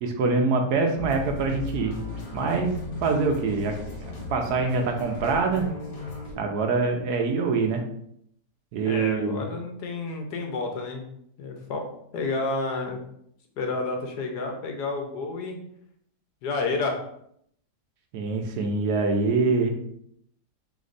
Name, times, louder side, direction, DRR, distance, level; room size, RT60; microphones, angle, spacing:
voice 1, 0.0-2.0 2.3-2.7 3.0-5.7 6.4-7.8 8.7-9.4 18.1-19.8, right 4 dB, 70° right, 3 dB, 1.1 m, -25 dB
sound 1, 1.0-6.3, left 3 dB, 60° left, 1.5 m, -36 dB
voice 2, 8.8-11.1 11.4-11.9 12.1-13.0 13.6-15.6 16.4-17.0, left 3 dB, 75° left, 3 dB, 1.3 m, -30 dB
3.4 x 3.1 x 3.9 m, 0.70 s
omnidirectional pair, 1.8 m